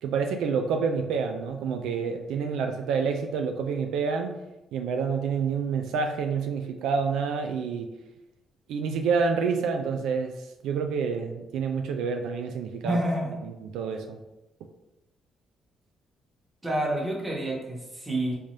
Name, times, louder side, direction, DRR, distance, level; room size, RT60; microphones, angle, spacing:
voice 1, 0.0-4.4 4.7-7.9 8.7-13.0 13.4-14.2, right 5 dB, 85° right, 5 dB, 0.3 m, -28 dB
voice 2, 12.8-13.4 16.6-18.4, right 1 dB, 15° right, -3 dB, 1.2 m, -28 dB
3.7 x 2.7 x 3.2 m, 0.97 s
cardioid pair, 90°, 0 cm